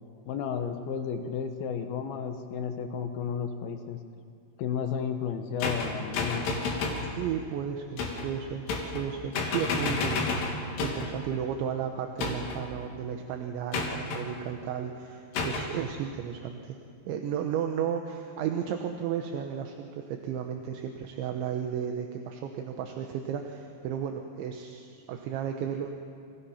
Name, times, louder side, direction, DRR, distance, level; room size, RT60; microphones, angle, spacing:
voice 1, 0.3-4.0 4.6-6.5, left 7 dB, 70° left, 6 dB, 2.5 m, -32 dB
sound 1, 5.6-7.1 8.0-8.3 8.7-9.1 9.3-11.1 12.2-12.7 13.7-14.2 15.4-15.7, left 4 dB, 85° left, 5.5 m, -30 dB
voice 2, 7.2-8.7 8.9-16.8 17.1-25.9, right 8 dB, 75° right, 4 dB, 3.5 m, -34 dB
29.0 x 28.5 x 5.8 m, 2.3 s
omnidirectional pair, 5.5 m